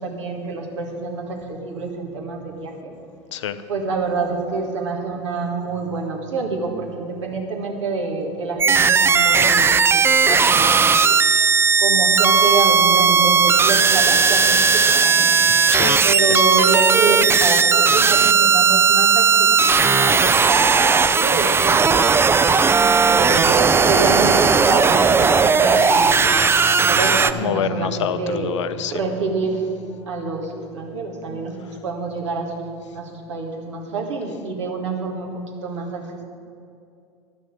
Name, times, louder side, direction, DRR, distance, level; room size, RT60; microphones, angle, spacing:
voice 1, 0.0-2.9 3.7-11.1 11.8-15.3 16.0-21.9 22.8-26.2 26.8-28.5 28.9-29.6 30.1-35.3 35.6-36.2, right 4 dB, 85° right, 0 dB, 1.9 m, -26 dB
sound 1, 8.6-27.3, right 5 dB, 15° right, 0.4 m, -16 dB
voice 2, 15.7-16.0 16.3-16.4 27.4-29.0, left 9 dB, 85° left, 12 dB, 0.6 m, -26 dB
Singing / Musical instrument, 24.1-33.7, left 6 dB, 30° left, 0.6 m, -38 dB
11.0 x 6.3 x 8.2 m, 2.5 s
hypercardioid pair, 85°, 15 cm